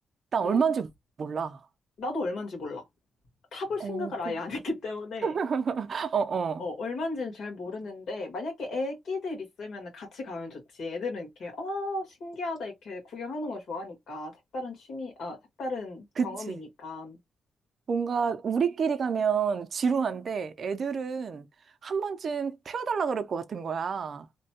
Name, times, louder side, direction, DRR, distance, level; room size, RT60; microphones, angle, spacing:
voice 1, 0.3-0.9 1.2-1.6 3.8-4.3 5.2-6.6 16.2-16.6 17.9-21.5 21.8-24.3, right 6 dB, 45° right, 0.4 m, -29 dB
voice 2, 2.0-2.8 3.5-5.3 6.6-17.2, left 3 dB, 70° left, 1.6 m, -35 dB
3.1 x 2.2 x 2.8 m
wide cardioid pair, 165°, 0 cm